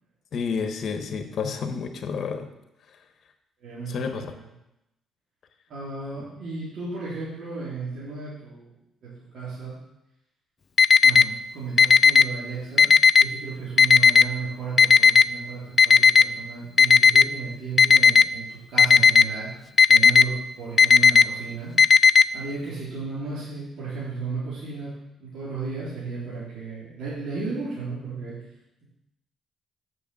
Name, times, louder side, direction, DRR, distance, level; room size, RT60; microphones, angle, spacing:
voice 1, 0.3-2.5 3.9-4.3, left 5 dB, 60° left, 7 dB, 1.2 m, -30 dB
voice 2, 3.6-4.5 5.7-8.7 9.0-9.7 11.0-19.5 19.9-21.7 22.3-24.9 25.2-28.3, right 4 dB, 75° right, -9 dB, 3.7 m, -34 dB
Alarm, 10.8-11.2 11.8-12.2 12.8-13.2 13.8-14.2 14.8-15.2 15.8-16.2 16.8-17.2 17.8-18.2 18.8-19.2 19.8-20.2 20.8-21.2 21.8-22.2, left 6 dB, 40° left, 0.3 m, -13 dB
6.8 x 6.2 x 7.7 m, 0.88 s
cardioid pair, 90°, 0 cm